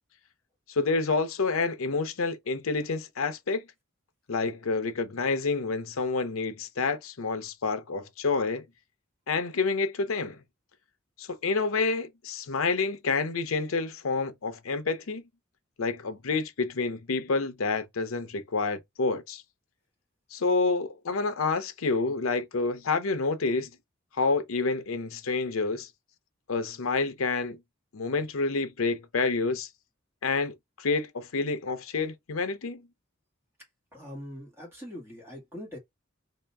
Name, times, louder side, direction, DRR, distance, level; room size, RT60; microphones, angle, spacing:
voice 1, 0.7-3.6 4.3-8.6 9.3-10.4 11.2-15.2 15.8-19.4 20.3-23.7 24.2-25.9 26.5-27.6 27.9-29.7 30.2-32.8, left 4 dB, 80° left, 0.7 m, -28 dB
voice 2, 33.9-35.8, equal, 10° right, 2.1 m, -42 dB
3.3 x 2.9 x 3.4 m
head